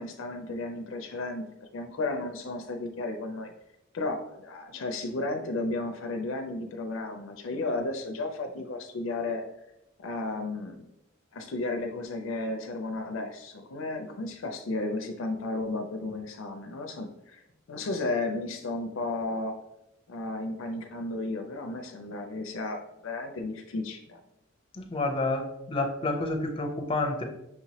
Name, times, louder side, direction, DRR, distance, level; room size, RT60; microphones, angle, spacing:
voice 1, 0.0-1.4 1.7-3.5 3.9-9.4 10.0-10.9 11.3-17.4 17.7-19.6 20.1-24.2, left 2 dB, 70° left, 5 dB, 0.5 m, -33 dB
voice 2, 24.7-27.2, left 2 dB, 25° left, 3 dB, 0.6 m, -29 dB
5.9 x 2.9 x 2.8 m, 0.86 s
head